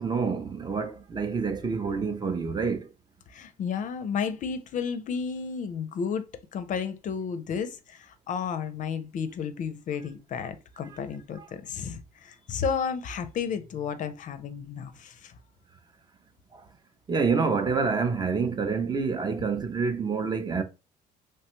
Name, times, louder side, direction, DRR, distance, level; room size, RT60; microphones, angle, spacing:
voice 1, 0.0-2.9 16.5-16.6 17.1-20.6, right 5 dB, 25° right, 0.4 m, -27 dB
voice 2, 3.3-15.3, left 6 dB, 50° left, 0.4 m, -32 dB
3.1 x 2.1 x 2.9 m
cardioid pair, 110°, 17 cm